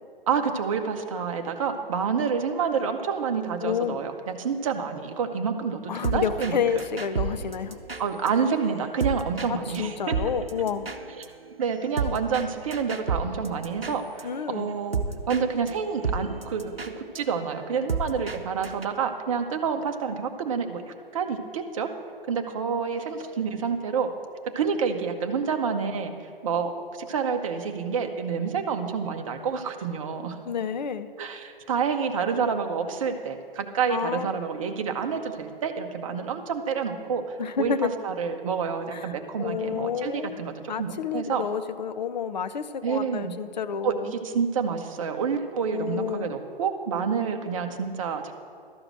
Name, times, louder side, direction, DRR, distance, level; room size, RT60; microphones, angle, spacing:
voice 1, 0.3-6.6 8.0-10.1 11.2-11.3 11.6-15.0 15.3-20.8 21.1-21.9 22.3-24.1 24.5-26.1 26.4-26.7 27.0-30.4 31.2-41.4 42.8-43.3 43.8-48.3, right 6 dB, 35° right, 5 dB, 0.8 m, -28 dB
voice 2, 3.6-4.0 5.9-7.8 9.5-11.0 14.2-14.7 30.5-31.1 33.9-34.4 37.4-37.9 38.9-44.1 45.7-46.3, left 7 dB, 50° left, 12 dB, 0.5 m, -30 dB
sound 1, 6.0-6.5 6.8-9.5 9.7-9.8 10.1-14.2 14.6-15.4 15.7-15.8 16.0-18.4 18.6-18.9, right 4 dB, 85° right, 0.7 m, -31 dB
12.5 x 4.9 x 7.5 m, 2.4 s
figure-of-eight pair, 125°, 29 cm